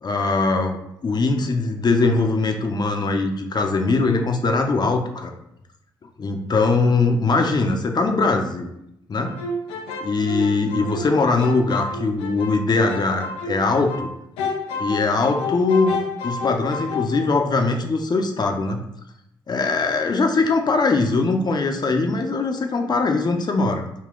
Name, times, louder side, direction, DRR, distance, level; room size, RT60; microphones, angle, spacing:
voice 1, 0.0-5.3 6.2-8.7 9.1-9.4 10.0-14.1 14.8-15.9 16.2-18.8 19.5-23.8, left 3 dB, 50° left, 3 dB, 0.6 m, -21 dB
sound 1, 9.3-14.1 14.4-17.1, left 3 dB, 90° left, 0.4 m, -30 dB
3.7 x 2.2 x 3.7 m, 0.78 s
supercardioid pair, 45°, 10 cm